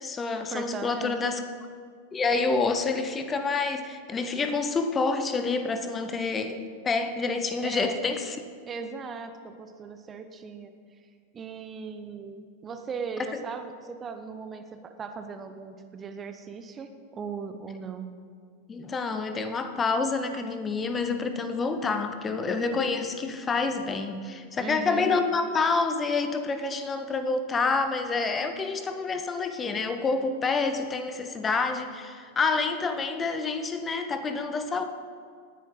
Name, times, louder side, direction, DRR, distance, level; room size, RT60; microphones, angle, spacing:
voice 1, 0.0-1.4 2.1-8.4 18.7-34.8, left 4 dB, 20° left, 8 dB, 0.9 m, -28 dB
voice 2, 0.5-1.2 7.6-8.0 8.7-10.7 11.3-18.1 24.6-25.1, right 5 dB, 20° right, 8 dB, 0.8 m, -38 dB
19.0 x 10.0 x 4.0 m, 2.1 s
figure-of-eight pair, 90°, 0 cm